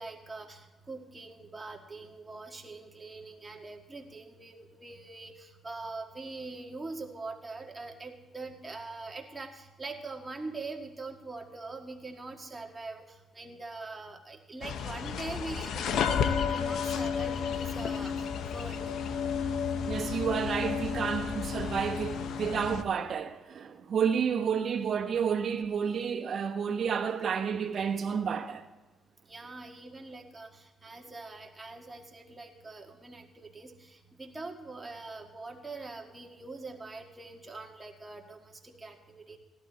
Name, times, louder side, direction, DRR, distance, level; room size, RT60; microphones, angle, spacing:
voice 1, 0.0-19.0 29.3-39.4, right 3 dB, 20° right, 1.7 m, -43 dB
sound 1, 14.6-22.8, left 7 dB, 75° left, 0.8 m, -32 dB
voice 2, 19.9-28.6, right 7 dB, 55° right, 1.1 m, -30 dB
16.0 x 11.5 x 4.1 m
cardioid pair, 90°, 0 cm